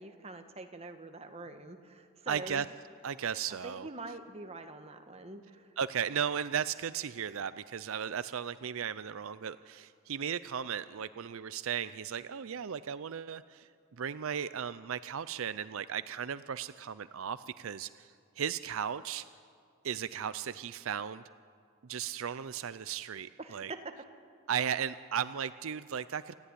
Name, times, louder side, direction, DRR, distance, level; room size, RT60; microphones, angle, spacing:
voice 1, 0.0-2.7 3.5-5.7 23.4-24.0, right 2 dB, 30° right, 6 dB, 1.4 m, -45 dB
voice 2, 2.3-2.7 3.0-3.9 5.8-13.7 14.0-18.1 18.4-19.2 19.8-21.2 21.9-23.7 24.5-26.3, right 8 dB, 65° right, 14 dB, 0.5 m, -36 dB
28.0 x 14.0 x 9.8 m, 2.2 s
head